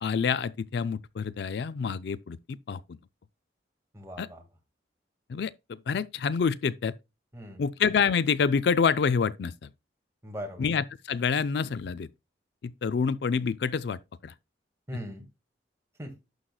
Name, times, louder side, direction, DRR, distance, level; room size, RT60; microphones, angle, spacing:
voice 1, 0.0-2.8 4.2-4.3 5.3-6.9 7.6-9.7 10.6-12.1 12.6-14.3, left 6 dB, 60° left, 0.4 m, -27 dB
voice 2, 3.9-4.4 7.3-7.7 10.2-10.7 14.9-15.2 16.0-16.2, equal, 15° right, 1.9 m, -40 dB
11.5 x 6.3 x 2.3 m
head